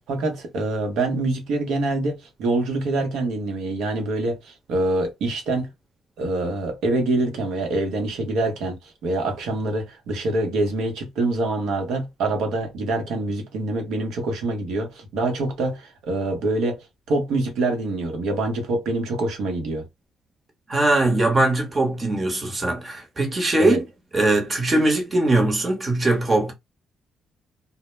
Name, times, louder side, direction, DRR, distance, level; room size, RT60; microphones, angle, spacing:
voice 1, 0.1-5.7 6.2-19.8 23.6-23.8, right 2 dB, 80° right, 0.8 m, -25 dB
voice 2, 20.7-23.8 24.1-26.5, right 2 dB, 30° right, 1.0 m, -21 dB
2.1 x 2.1 x 3.1 m
cardioid pair, 90°, 0 cm